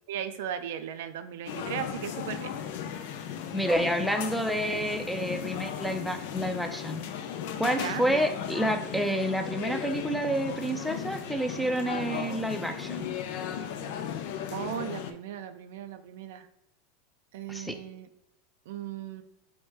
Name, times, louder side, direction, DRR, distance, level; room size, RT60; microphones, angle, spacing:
voice 1, 0.1-2.5 7.7-8.0 14.5-16.5 17.3-18.1 18.7-19.2, right 9 dB, 75° right, 9 dB, 0.3 m, -37 dB
sound 1, 1.5-15.1, left 8 dB, 70° left, 0.4 m, -36 dB
voice 2, 3.5-7.0 7.6-13.1 17.5-17.7, right 1 dB, ahead, 5 dB, 0.5 m, -29 dB
4.5 x 2.2 x 4.6 m, 0.84 s
supercardioid pair, 115°, 0 cm